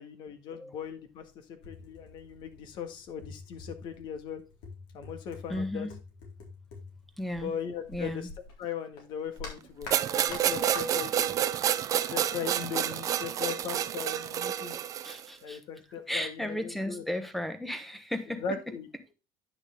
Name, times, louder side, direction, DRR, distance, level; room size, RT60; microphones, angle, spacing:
voice 1, 0.0-4.4 4.9-5.9 7.3-8.3 8.6-11.3 11.9-14.7 15.4-17.0 18.3-18.9, left 7 dB, 50° left, 1.7 m, -39 dB
sound 1, 0.8-0.9 1.2-8.6 8.9-11.3 11.6-12.8, left 4 dB, 85° left, 4.1 m, -47 dB
voice 2, 5.5-5.9 7.2-7.5 7.9-8.3 15.0-15.6 16.1-18.4, left 1 dB, ahead, 1.1 m, -34 dB
sound 2, 9.9-15.3, right 10 dB, 35° right, 0.5 m, -29 dB
10.0 x 6.2 x 3.5 m
cardioid pair, 155°, 10 cm